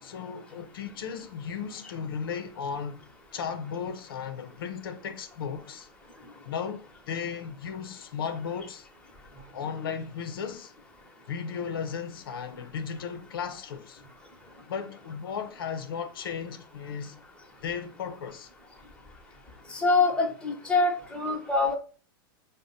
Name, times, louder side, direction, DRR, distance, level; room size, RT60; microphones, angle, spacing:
voice 1, 0.0-3.0 3.3-5.9 6.4-8.9 9.5-10.7 11.3-14.0 14.7-17.2 17.6-18.5 19.3-19.4, left 6 dB, 75° left, 0.6 m, -35 dB
voice 2, 19.7-21.7, left 3 dB, 10° left, 1.0 m, -25 dB
4.9 x 2.1 x 4.0 m
hypercardioid pair, 110°, 12 cm